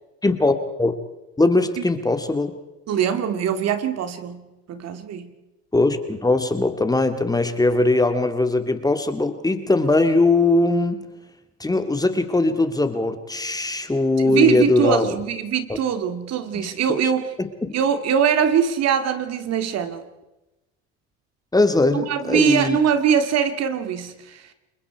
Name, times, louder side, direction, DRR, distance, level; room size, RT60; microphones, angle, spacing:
voice 1, 0.2-0.9 1.4-2.6 5.7-11.0 11.6-15.1 15.7-15.8 16.5-16.7 17.4-17.7 21.5-22.8, left 2 dB, 10° left, 8 dB, 2.1 m, -20 dB
voice 2, 2.9-5.3 14.2-17.3 17.7-20.0 21.9-24.4, right 7 dB, 55° right, 9 dB, 2.2 m, -22 dB
29.5 x 21.5 x 4.7 m, 1.0 s
supercardioid pair, 90°, 31 cm